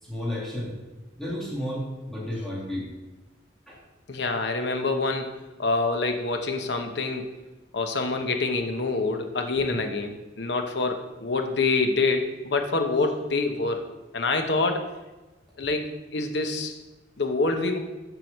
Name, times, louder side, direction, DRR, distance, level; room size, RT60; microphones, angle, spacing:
voice 1, 0.1-0.8 1.2-2.9 3.7-3.8, left 1 dB, ahead, -6 dB, 2.2 m, -32 dB
voice 2, 4.1-7.3 7.7-14.9 15.6-16.7 17.2-17.8, left 3 dB, 70° left, 5 dB, 0.9 m, -26 dB
7.6 x 4.8 x 6.5 m, 1.1 s
head